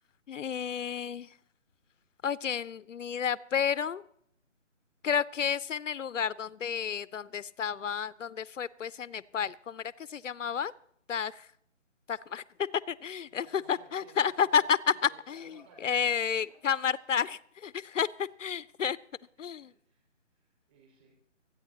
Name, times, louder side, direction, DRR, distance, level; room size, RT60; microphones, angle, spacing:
voice 1, 0.3-1.3 2.2-4.0 5.0-10.7 11.1-11.5 12.1-12.4 12.9-14.8 15.3-15.5 15.8-19.0 19.4-19.7, left 7 dB, 75° left, 19 dB, 0.5 m, -31 dB
voice 2, 13.3-16.5 19.4-21.2, right 3 dB, 25° right, -2 dB, 5.6 m, -59 dB
25.5 x 9.0 x 2.9 m, 0.69 s
figure-of-eight pair, 155°, 38 cm